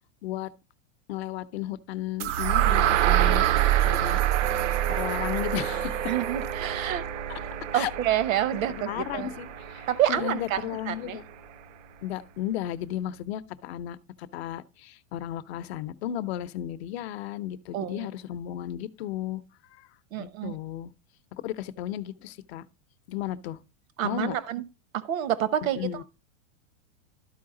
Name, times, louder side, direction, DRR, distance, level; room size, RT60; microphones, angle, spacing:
voice 1, 1.1-3.5 3.8-4.2 4.9-6.1 7.3-7.4 7.7-7.9 8.9-11.2 12.0-19.9 20.2-20.9 21.4-22.6 23.1-23.6 24.0-24.4 25.7-26.0, left 12 dB, 50° left, 0.7 m, -34 dB
sound 1, 2.2-10.1, right 13 dB, 65° right, 0.5 m, -26 dB
Doorbell, 4.4-13.3, right 4 dB, 20° right, 0.5 m, -40 dB
voice 2, 6.1-7.0 7.7-9.3 9.9-11.2 17.7-18.1 20.1-20.6 24.0-24.6 24.9-26.0, right 11 dB, 85° right, 1.0 m, -28 dB
12.5 x 4.8 x 3.7 m
supercardioid pair, 170°, 40 cm